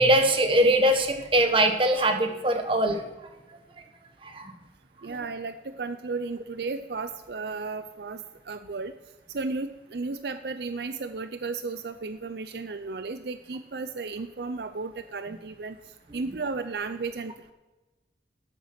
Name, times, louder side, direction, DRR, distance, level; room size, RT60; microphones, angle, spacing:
voice 1, 0.0-3.0 4.2-4.5 5.1-5.2, right 1 dB, 30° right, 5 dB, 1.1 m, -22 dB
voice 2, 5.0-8.9 9.3-15.8 16.1-17.3, right 4 dB, 70° right, 10 dB, 0.5 m, -34 dB
12.5 x 8.0 x 5.8 m, 1.1 s
head